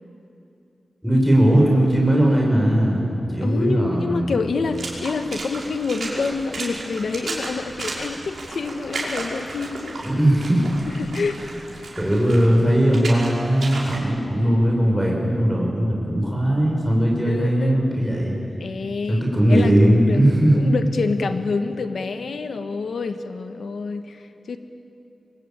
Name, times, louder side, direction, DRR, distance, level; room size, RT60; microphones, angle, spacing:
voice 1, 1.0-4.3 10.0-10.7 12.0-18.4 19.1-20.8, right 1 dB, ahead, -2 dB, 6.0 m, -19 dB
voice 2, 3.4-10.0 11.0-11.4 17.2-17.8 18.6-20.2 20.5-24.6, left 4 dB, 85° left, 8 dB, 1.5 m, -27 dB
Water / Splash splatter, 4.6-14.0, right 2 dB, 75° right, 5.5 m, -34 dB
26.0 x 24.5 x 8.8 m, 2.7 s
wide cardioid pair, 130°, 0 cm